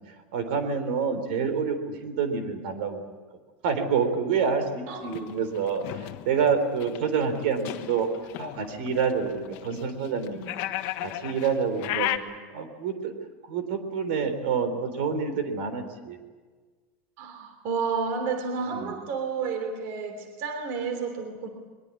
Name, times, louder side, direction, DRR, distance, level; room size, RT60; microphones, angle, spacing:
voice 1, 0.3-3.1 3.6-8.1 8.4-10.5 11.0-13.1 13.5-16.2 18.7-18.9, right 6 dB, 70° right, 9 dB, 3.8 m, -28 dB
sound 1, 5.0-12.2, left 14 dB, 40° left, 1.4 m, -35 dB
voice 2, 17.2-21.5, right 5 dB, 45° right, 6 dB, 3.2 m, -31 dB
22.5 x 22.0 x 8.6 m, 1.4 s
supercardioid pair, 175°, 6 cm